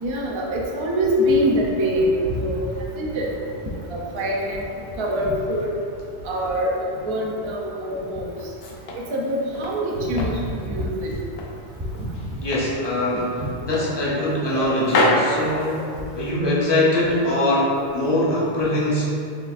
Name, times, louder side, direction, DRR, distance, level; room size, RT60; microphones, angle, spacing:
voice 1, 0.0-2.7 3.0-3.3 3.9-4.6 5.0-5.7 6.2-8.3 9.1-11.1, equal, 45° right, -2 dB, 0.4 m, -24 dB
sound 1, 8.3-9.8 10.2-11.6 11.9-12.8 13.1-13.3 13.7-14.6 14.8-16.3, left 1 dB, 70° left, 0.8 m, -26 dB
voice 2, 12.4-19.1, left 1 dB, 25° left, -6 dB, 0.8 m, -22 dB
6.4 x 2.5 x 2.4 m, 2.5 s
omnidirectional pair, 1.1 m